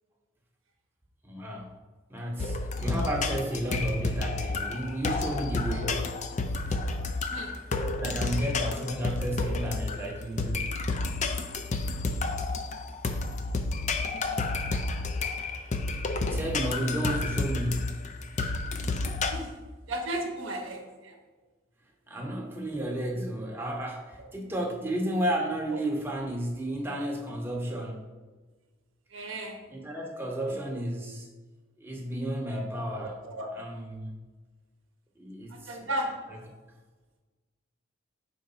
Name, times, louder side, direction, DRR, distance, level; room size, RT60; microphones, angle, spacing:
voice 1, 1.2-1.8 2.1-6.1 6.7-6.8 7.9-10.8 16.3-18.0 22.1-28.0 29.7-31.3 31.8-33.1 33.6-34.1 35.2-35.7, right 1 dB, 10° right, -1 dB, 0.8 m, -32 dB
sound 1, 2.4-19.3, left 3 dB, 35° left, 0.4 m, -30 dB
voice 2, 12.0-12.3 13.9-14.2 19.3-19.5 19.9-21.2 24.2-24.3 29.1-29.6 30.5-30.6 33.0-33.5 35.5-36.5, right 1 dB, 60° right, 3 dB, 0.8 m, -36 dB
4.7 x 3.9 x 5.5 m, 1.3 s
head